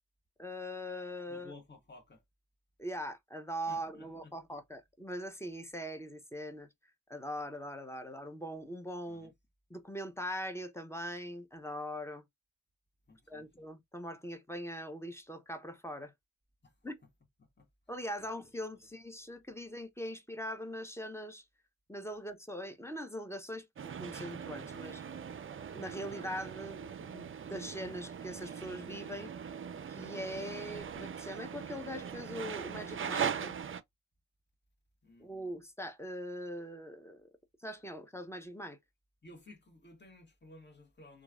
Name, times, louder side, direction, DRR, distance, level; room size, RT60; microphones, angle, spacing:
voice 1, 0.4-1.5 2.8-6.7 7.1-9.3 9.7-12.2 13.3-16.1 16.8-17.0 17.9-21.4 21.9-25.0 25.7-29.3 29.9-33.6 35.2-37.3 37.6-38.8, equal, 10° left, 0.7 m, -41 dB
voice 2, 1.3-2.2 3.7-4.6 9.1-9.3 13.1-13.5 16.6-16.7 17.4-17.7 18.2-18.3 35.0-35.3 39.2-41.2, left 2 dB, 30° left, 1.5 m, -55 dB
sound 1, 23.8-33.8, right 7 dB, 40° right, 0.4 m, -40 dB
3.0 x 2.3 x 2.4 m
cardioid pair, 75°, 34 cm